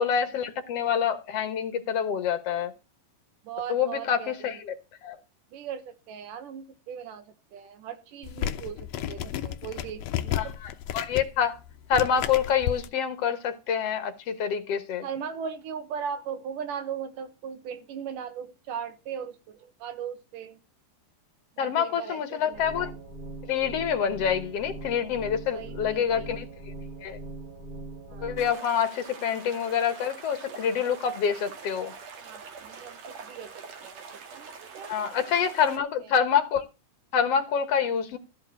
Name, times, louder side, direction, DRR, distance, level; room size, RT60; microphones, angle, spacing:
voice 1, 0.0-2.7 3.7-4.8 5.0-5.2 10.4-11.6 11.9-15.1 21.6-22.9 23.5-26.5 27.0-27.2 28.2-31.9 34.9-36.6 37.1-38.2, left 7 dB, 55° left, 2.0 m, -27 dB
voice 2, 3.4-4.6 5.5-10.5 15.0-20.6 21.6-22.7 25.5-26.3 28.1-28.4 32.2-36.1, right 7 dB, 80° right, 2.9 m, -39 dB
sound 1, 8.2-12.9, left 11 dB, 75° left, 1.5 m, -33 dB
sound 2, 22.5-28.5, right 2 dB, 30° right, 3.2 m, -41 dB
sound 3, 28.4-35.8, right 5 dB, 60° right, 2.6 m, -44 dB
14.0 x 4.7 x 7.4 m
omnidirectional pair, 3.8 m